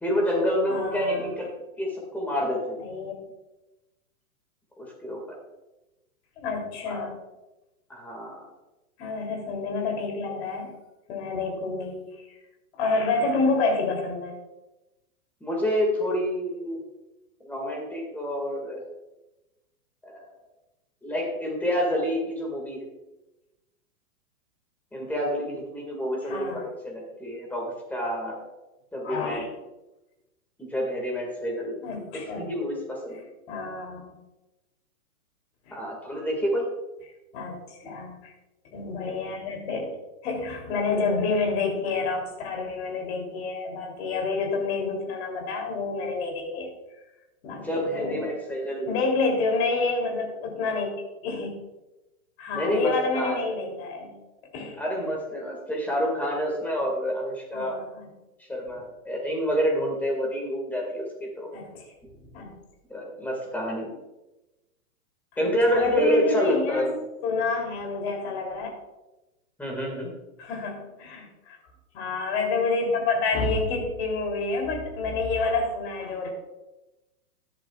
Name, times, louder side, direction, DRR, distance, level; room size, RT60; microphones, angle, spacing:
voice 1, 0.0-1.5 1.8-2.8 4.8-5.2 6.9-7.0 7.9-8.4 15.4-16.8 17.4-18.8 20.0-20.2 21.0-22.8 24.9-28.4 28.9-29.5 30.6-31.8 32.3-33.2 35.7-36.7 47.5-48.9 52.5-53.4 54.8-57.8 58.5-61.5 62.9-63.9 65.4-66.9 69.6-70.1, equal, 5° left, -1 dB, 2.1 m, -28 dB
voice 2, 0.7-1.3 2.8-3.1 6.4-7.1 9.0-10.7 11.1-12.4 12.8-14.4 26.2-26.7 29.0-29.5 31.8-32.5 33.5-34.2 35.7-35.8 37.3-38.3 38.7-40.0 40.2-46.7 47.4-48.4 48.8-50.9 51.2-51.5 52.4-54.2 54.5-54.8 57.5-58.1 61.5-62.6 65.3-66.9 67.2-68.7 70.4-71.6 71.9-76.3, left 3 dB, 45° left, 1 dB, 3.3 m, -29 dB
13.5 x 10.5 x 2.4 m, 1.0 s
hypercardioid pair, 155°, 45 cm